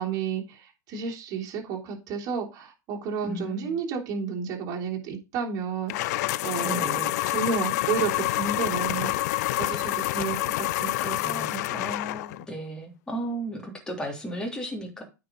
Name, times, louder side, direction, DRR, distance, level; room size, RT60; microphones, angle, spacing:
voice 1, 0.0-11.8, right 6 dB, 40° right, -1 dB, 3.3 m, -32 dB
voice 2, 3.2-3.8 6.6-7.0 10.9-15.0, right 1 dB, 10° left, 0 dB, 3.3 m, -35 dB
sound 1, 5.9-12.4, left 17 dB, 60° left, 0.6 m, -28 dB
9.2 x 5.3 x 5.2 m, 0.28 s
hypercardioid pair, 110°, 10 cm